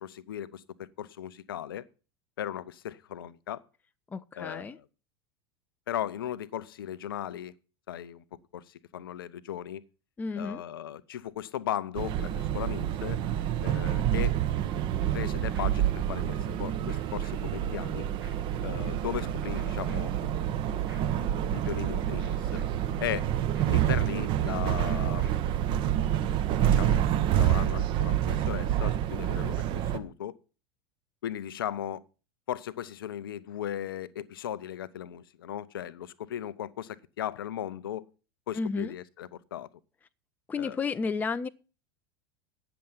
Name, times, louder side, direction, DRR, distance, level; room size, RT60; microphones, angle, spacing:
voice 1, 0.0-1.9 2.4-3.6 4.3-4.9 5.9-7.5 7.9-8.2 8.5-9.8 10.4-13.2 13.6-14.3 15.1-15.8 16.1-18.1 18.6-20.1 21.5-22.6 23.0-23.3 23.7-25.4 26.7-27.0 27.4-30.4 31.2-32.0 32.5-38.1 38.5-39.7 40.6-40.8, left 11 dB, 65° left, 0.7 m, -37 dB
voice 2, 4.1-4.8 10.2-10.6 38.5-38.9 40.5-41.5, left 4 dB, 15° left, 0.5 m, -32 dB
sound 1, 12.0-30.0, right 11 dB, 40° right, 1.1 m, -28 dB
sound 2, 15.2-25.6, equal, 80° right, 3.9 m, -48 dB
9.4 x 6.9 x 7.4 m
figure-of-eight pair, 80°, 13 cm